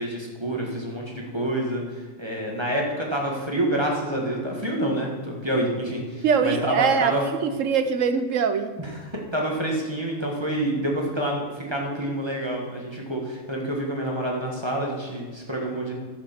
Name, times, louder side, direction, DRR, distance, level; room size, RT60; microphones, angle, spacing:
voice 1, 0.0-1.8 2.2-7.2 8.8-15.9, right 1 dB, 20° right, -1 dB, 1.6 m, -27 dB
voice 2, 6.2-8.7, right 6 dB, 65° right, 9 dB, 1.0 m, -23 dB
12.5 x 6.7 x 5.9 m, 1.4 s
omnidirectional pair, 1.6 m